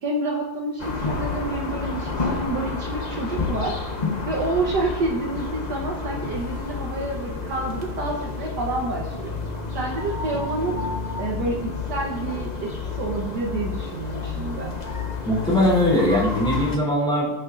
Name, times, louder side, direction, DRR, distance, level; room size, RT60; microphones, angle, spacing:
voice 1, 0.0-3.8 4.3-9.4 9.7-10.8 11.2-14.7, right 2 dB, 60° right, -1 dB, 1.5 m, -28 dB
sound 1, 0.8-16.8, left 4 dB, 40° left, 0.6 m, -30 dB
voice 2, 15.2-17.3, left 1 dB, ahead, -5 dB, 2.8 m, -20 dB
17.5 x 6.8 x 2.5 m, 1.0 s
omnidirectional pair, 2.1 m